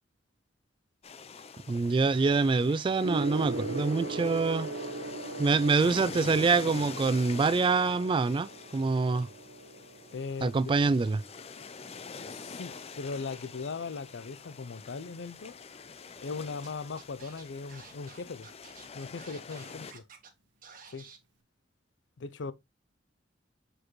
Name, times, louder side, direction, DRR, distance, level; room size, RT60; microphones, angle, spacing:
sound 1, 1.0-19.9, left 5 dB, 35° left, 0.5 m, -45 dB
voice 1, 1.7-4.7 5.4-9.3 10.4-11.2, right 4 dB, 30° right, 0.3 m, -25 dB
Gong, 3.0-12.8 13.7-14.0, right 2 dB, 75° right, 1.0 m, -40 dB
voice 2, 10.1-10.7 12.3-15.6 16.2-18.5 18.9-20.1 20.9-21.1 22.2-22.5, left 4 dB, 85° left, 0.5 m, -39 dB
Scratching (performance technique), 16.6-16.7 17.0-20.3 20.6-21.2, right 6 dB, 50° right, 1.4 m, -51 dB
6.2 x 4.9 x 3.1 m
head